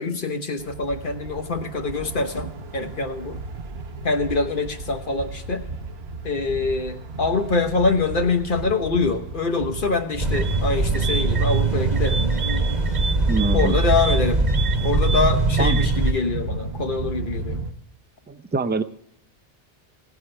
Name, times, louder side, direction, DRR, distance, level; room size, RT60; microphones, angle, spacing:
voice 1, 0.0-3.4 4.0-5.6 6.2-12.3 13.5-14.4 14.8-17.6, left 4 dB, 55° left, 6 dB, 1.2 m, -24 dB
sound 1, 0.6-17.7, right 3 dB, 80° right, 1.2 m, -33 dB
sound 2, 10.2-16.1, right 3 dB, 45° right, 1.3 m, -21 dB
voice 2, 13.3-13.8 15.6-15.8 18.3-18.8, right 3 dB, 15° right, 10 dB, 0.4 m, -24 dB
16.5 x 9.7 x 3.3 m, 0.75 s
omnidirectional pair, 1.0 m